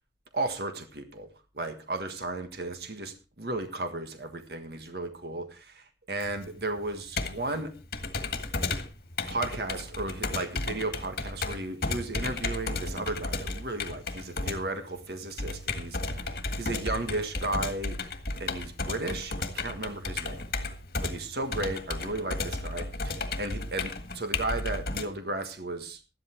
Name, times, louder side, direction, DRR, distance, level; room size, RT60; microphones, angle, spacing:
voice 1, 0.3-1.3 1.5-7.7 9.3-18.0 18.4-20.5 21.0-26.1, right 2 dB, 65° right, 8 dB, 1.6 m, -34 dB
Computer keyboard, 6.2-25.1, left 3 dB, 55° left, 1.8 m, -34 dB
13.5 x 11.5 x 4.5 m, 0.32 s
head